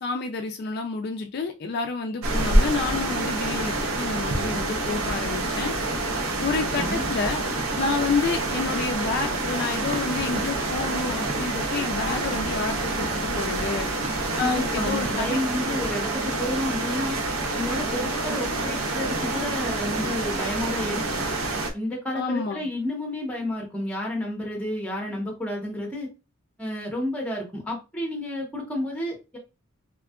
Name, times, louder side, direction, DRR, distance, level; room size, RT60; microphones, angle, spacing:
voice 1, 0.0-5.7 6.4-7.4 7.8-13.9 14.4-15.4 22.1-22.7, left 4 dB, 50° left, 4 dB, 0.3 m, -29 dB
sound 1, 2.2-21.7, right 2 dB, 90° right, 0.6 m, -27 dB
sound 2, 9.8-15.1, right 1 dB, 30° right, 0.3 m, -39 dB
voice 2, 14.3-17.2 17.5-21.2 21.7-26.1 26.6-29.4, left 1 dB, 5° left, -1 dB, 0.8 m, -31 dB
3.5 x 2.3 x 2.3 m, 0.28 s
head